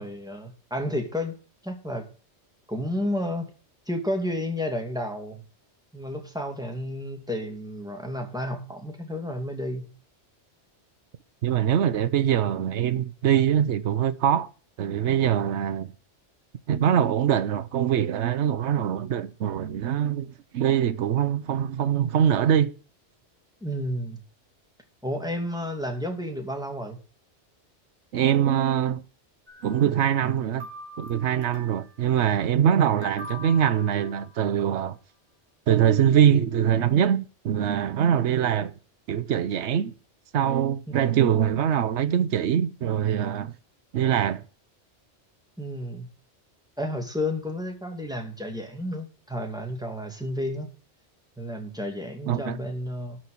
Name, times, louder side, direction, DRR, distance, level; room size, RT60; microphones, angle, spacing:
voice 1, 0.0-1.4 1.6-2.1 2.7-3.5 3.9-5.4 5.9-9.9 23.6-24.2 25.0-27.0 45.6-46.1 46.8-50.7 51.4-53.2, left 1 dB, 5° right, 2.4 m, -31 dB
voice 2, 11.4-14.5 14.8-15.9 16.7-22.7 28.1-29.0 29.6-30.7 31.0-35.0 35.7-38.7 39.1-39.9 40.3-43.5 43.9-44.4 52.3-52.6, right 9 dB, 75° right, 1.1 m, -23 dB
sound 1, 29.5-30.3 30.6-32.0 33.0-34.6, left 2 dB, 55° right, 4.7 m, -43 dB
12.5 x 4.4 x 8.1 m
omnidirectional pair, 1.2 m